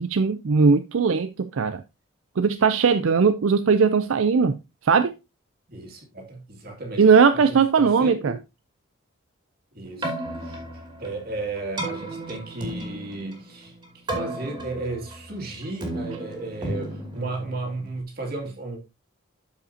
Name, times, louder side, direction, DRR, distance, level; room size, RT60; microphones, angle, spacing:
voice 1, 0.0-1.8 2.4-4.6 4.8-5.1 7.0-8.3, right 5 dB, 70° right, 0.5 m, -19 dB
voice 2, 5.7-7.0 7.3-8.4 9.7-10.2 10.4-10.6 11.0-13.7 14.1-18.8, right 2 dB, 45° right, 2.3 m, -34 dB
Keyboard (musical), 9.8-18.0, right 1 dB, 20° right, 2.4 m, -34 dB
12.5 x 5.1 x 2.7 m
head